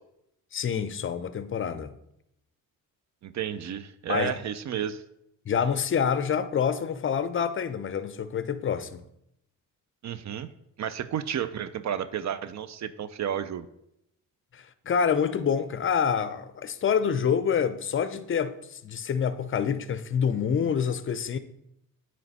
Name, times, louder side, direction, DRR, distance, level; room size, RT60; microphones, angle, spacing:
voice 1, 0.5-1.9 4.1-4.4 5.5-9.0 14.5-21.4, left 7 dB, 35° left, 0.5 m, -27 dB
voice 2, 3.2-5.0 10.0-10.5 10.8-13.7, right 9 dB, 55° right, 0.5 m, -32 dB
8.7 x 3.2 x 4.0 m
cardioid pair, 65°, 34 cm